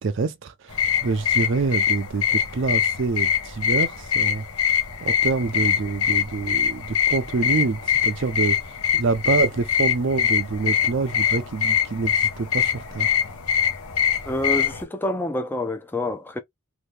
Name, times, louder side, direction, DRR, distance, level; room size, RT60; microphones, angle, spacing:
voice 1, 0.0-4.5 5.0-8.6 8.9-13.1, right 4 dB, 55° right, 0.4 m, -26 dB
sound 1, 0.7-14.8, left 8 dB, 85° left, 0.9 m, -23 dB
voice 2, 14.3-16.4, left 1 dB, 10° left, 0.4 m, -27 dB
2.7 x 2.7 x 3.2 m
head